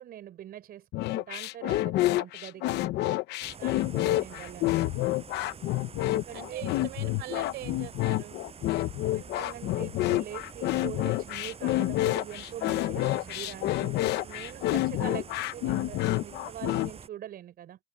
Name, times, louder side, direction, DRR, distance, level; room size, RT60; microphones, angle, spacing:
voice 1, 0.0-3.1 3.6-4.8 6.0-6.7 8.7-8.8 9.0-17.8, right 11 dB, 65° right, 6.2 m, -43 dB
sound 1, 0.9-16.9, left 16 dB, 85° left, 1.0 m, -28 dB
sound 2, 3.4-17.1, right 6 dB, 35° right, 7.6 m, -47 dB
voice 2, 6.3-8.4, right 17 dB, 85° right, 4.4 m, -43 dB
cardioid pair, 110°, 17 cm